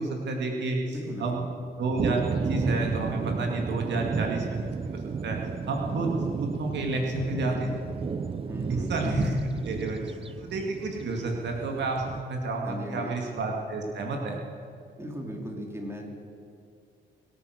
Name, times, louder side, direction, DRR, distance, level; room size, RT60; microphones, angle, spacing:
voice 1, 0.0-1.5 1.8-5.4 5.7-7.7 8.7-14.4, right 2 dB, 60° right, 1 dB, 2.2 m, -30 dB
voice 2, 0.9-1.5 8.5-8.9 12.6-13.2 15.0-16.1, equal, 10° right, 1 dB, 3.0 m, -37 dB
sound 1, 2.0-12.2, right 5 dB, 30° right, 0.5 m, -33 dB
23.0 x 9.0 x 6.4 m, 2.4 s
cardioid pair, 90°, 20 cm